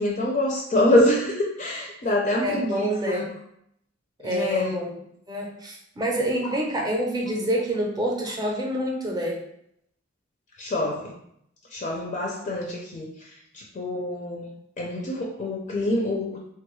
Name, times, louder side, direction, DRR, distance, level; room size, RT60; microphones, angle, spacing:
voice 1, 0.0-3.3 4.2-4.8 6.5-6.6 10.6-11.2 11.7-14.5 14.8-16.4, left 1 dB, 35° left, -2 dB, 0.4 m, -25 dB
voice 2, 2.4-3.2 4.2-4.9 5.3-9.4, equal, 20° right, -1 dB, 0.6 m, -27 dB
3.4 x 2.2 x 3.0 m, 0.73 s
head